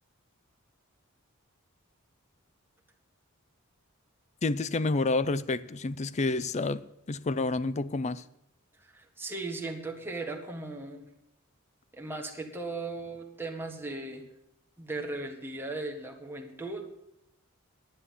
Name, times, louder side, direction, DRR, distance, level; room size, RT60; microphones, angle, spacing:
voice 1, 4.4-6.8 7.1-8.2, left 3 dB, 30° left, 0.5 m, -29 dB
voice 2, 8.8-11.0 11.9-14.2 14.8-17.1, right 2 dB, 10° right, 1.6 m, -37 dB
10.0 x 9.8 x 7.5 m
head